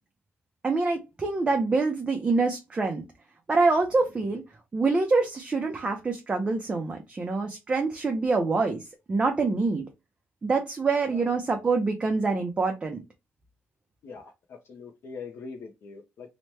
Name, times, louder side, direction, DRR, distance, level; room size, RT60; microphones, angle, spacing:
voice 1, 0.6-3.0 3.5-4.4 4.7-9.9 10.4-13.0, right 3 dB, 25° right, 0.5 m, -25 dB
voice 2, 14.0-16.3, left 5 dB, 65° left, 0.6 m, -42 dB
2.9 x 2.1 x 3.2 m
wide cardioid pair, 160°, 5 cm